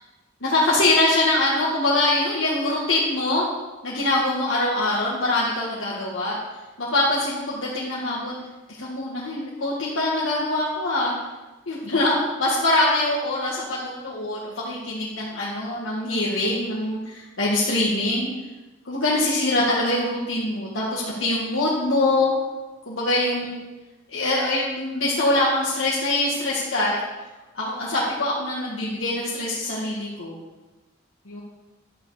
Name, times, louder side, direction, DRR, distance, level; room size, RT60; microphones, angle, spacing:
voice 1, 0.4-3.4 3.8-6.4 6.8-8.4 8.8-11.1 11.7-12.1 12.4-18.3 18.9-22.3 22.9-23.6 24.1-27.0 27.5-30.4 31.3-31.4, left 2 dB, 85° left, -6 dB, 2.0 m, -23 dB
11.5 x 7.2 x 5.0 m, 1.1 s
head